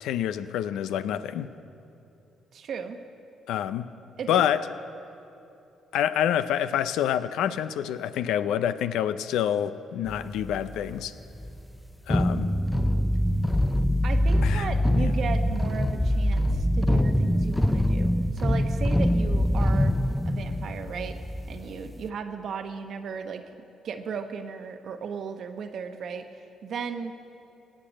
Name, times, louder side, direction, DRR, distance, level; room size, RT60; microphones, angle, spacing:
voice 1, 0.0-1.5 3.5-3.9 4.3-4.6 5.9-11.1 12.1-12.5 14.4-14.7, left 10 dB, 85° left, 13 dB, 0.5 m, -27 dB
voice 2, 2.5-3.0 4.2-4.4 14.0-19.9 20.2-21.2 21.5-23.4 23.8-26.3 26.6-27.1, right 6 dB, 65° right, 7 dB, 1.0 m, -35 dB
sound 1, 10.1-11.0 11.4-11.7 12.1-22.1, left 1 dB, 5° left, 0.5 m, -24 dB
18.0 x 6.7 x 8.5 m, 2.7 s
cardioid pair, 90°, 0 cm